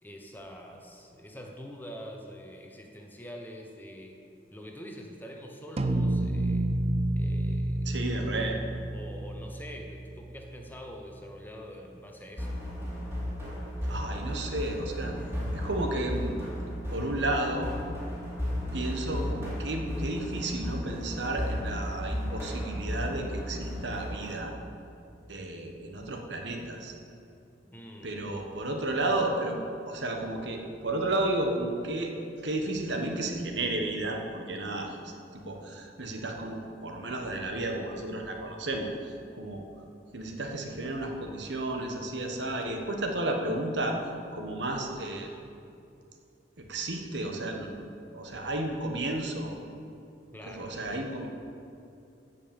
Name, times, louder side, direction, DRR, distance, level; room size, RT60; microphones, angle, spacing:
voice 1, 0.0-4.2 4.5-6.7 7.1-8.0 8.9-12.6 27.7-28.2 50.3-50.7, equal, 10° left, 1 dB, 1.0 m, -45 dB
sound 1, 5.8-10.4, right 1 dB, 35° right, 0.5 m, -29 dB
voice 2, 7.8-8.6 13.9-15.2 15.5-16.4 16.9-17.7 18.7-24.5 25.3-26.9 28.0-29.6 29.9-32.1 32.4-39.6 40.1-44.0 44.3-45.3 46.6-49.6 50.5-51.3, right 2 dB, 70° right, 3 dB, 1.4 m, -32 dB
sound 2, 12.4-24.4, equal, 15° right, 2.8 m, -34 dB
15.0 x 5.5 x 7.1 m, 2.6 s
head